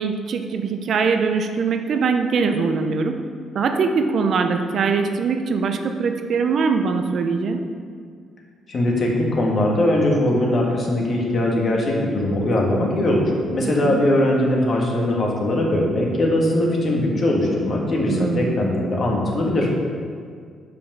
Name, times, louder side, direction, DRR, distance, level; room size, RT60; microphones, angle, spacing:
voice 1, 0.0-3.2 3.5-7.6 13.6-14.0 18.1-18.5, right 5 dB, 60° right, 6 dB, 0.5 m, -22 dB
voice 2, 8.7-19.7, left 1 dB, 50° left, -1 dB, 1.4 m, -20 dB
5.1 x 5.1 x 6.0 m, 2.1 s
cardioid pair, 90°, 0 cm